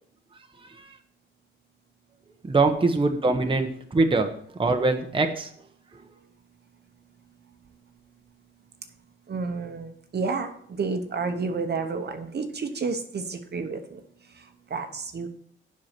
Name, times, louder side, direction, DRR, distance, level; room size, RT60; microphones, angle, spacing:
voice 1, 0.6-0.9 2.4-4.3 4.6-5.5, right 3 dB, 25° right, 5 dB, 0.9 m, -23 dB
voice 2, 9.3-14.0 14.3-15.3, right 4 dB, 50° right, 7 dB, 1.0 m, -31 dB
8.0 x 5.8 x 5.8 m, 0.63 s
cardioid pair, 100°, 21 cm